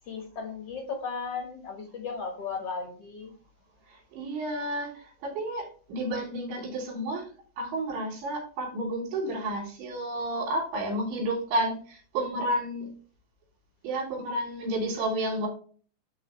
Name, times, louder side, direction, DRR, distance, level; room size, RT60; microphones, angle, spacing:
voice 1, 0.0-3.3, left 5 dB, 65° left, 2 dB, 1.5 m, -35 dB
voice 2, 3.9-7.3 7.6-12.9 13.8-15.5, right 1 dB, 85° right, -1 dB, 5.5 m, -31 dB
12.0 x 4.5 x 3.2 m, 0.42 s
omnidirectional pair, 5.0 m